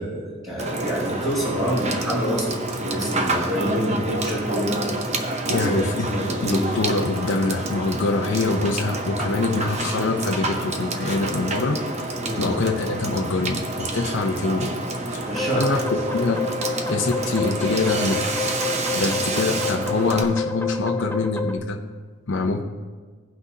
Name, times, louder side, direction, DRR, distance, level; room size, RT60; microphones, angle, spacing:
voice 1, 0.0-2.5 2.8-4.9 5.4-5.7 6.1-6.7 12.2-12.5 15.3-15.7, equal, 15° right, -9 dB, 2.1 m, -27 dB
Water / Water tap faucet / Sink (filling or washing), 0.6-20.2, right 2 dB, 30° right, 0.7 m, -28 dB
voice 2, 5.5-6.1 6.4-11.8 12.4-14.8 15.1-16.4 16.9-18.4 18.9-21.8 22.3-22.6, left 3 dB, 60° left, 2 dB, 0.6 m, -24 dB
sound 1, 15.3-21.6, left 4 dB, 10° left, 0.4 m, -29 dB
17.5 x 6.0 x 2.8 m, 1.5 s
head